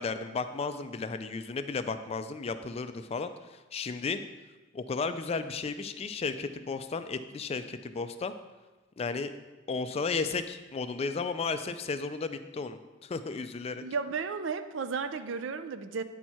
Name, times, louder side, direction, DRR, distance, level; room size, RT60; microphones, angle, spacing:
voice 1, 0.0-4.2 4.7-8.3 9.0-9.3 9.7-13.8, left 4 dB, 30° left, 10 dB, 0.3 m, -34 dB
voice 2, 13.8-16.0, right 5 dB, 70° right, 11 dB, 0.4 m, -33 dB
9.0 x 4.5 x 4.3 m, 1.2 s
head